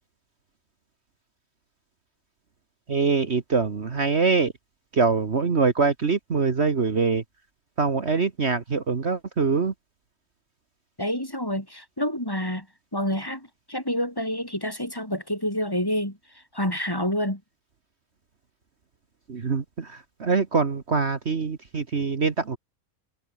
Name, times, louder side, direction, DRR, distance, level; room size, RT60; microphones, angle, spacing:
voice 1, 2.9-4.5 4.9-7.2 7.8-9.7 19.3-22.6, right 4 dB, 50° right, 1.8 m, -24 dB
voice 2, 11.0-12.7 12.9-16.2 16.5-17.4, left 1 dB, 15° left, 4.2 m, -28 dB
omnidirectional pair, 1.5 m